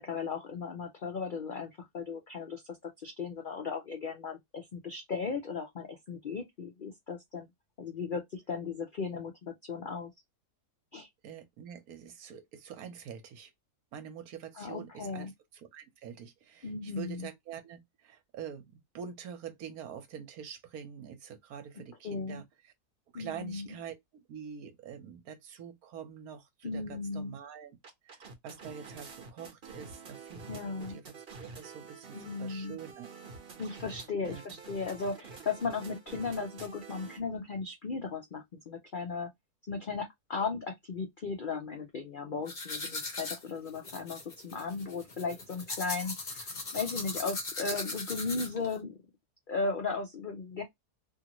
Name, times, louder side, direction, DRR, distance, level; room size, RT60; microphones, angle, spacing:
voice 1, 0.0-7.5 7.8-10.1 10.9-11.1 14.6-15.3 16.6-17.3 22.0-22.4 23.1-23.7 26.6-27.3 30.5-31.0 32.1-32.8 33.6-39.3 39.7-46.5 46.7-49.0 49.5-50.6, left 4 dB, 70° left, 0.5 m, -36 dB
voice 2, 11.2-13.5 13.9-22.7 23.1-27.8 28.0-31.0 31.4-33.1 34.2-34.6, right 8 dB, 70° right, 1.2 m, -45 dB
sound 1, 27.8-37.2, right 4 dB, 45° right, 0.9 m, -48 dB
sound 2, 42.5-48.7, left 3 dB, 35° left, 0.9 m, -39 dB
2.7 x 2.5 x 2.9 m
omnidirectional pair, 1.7 m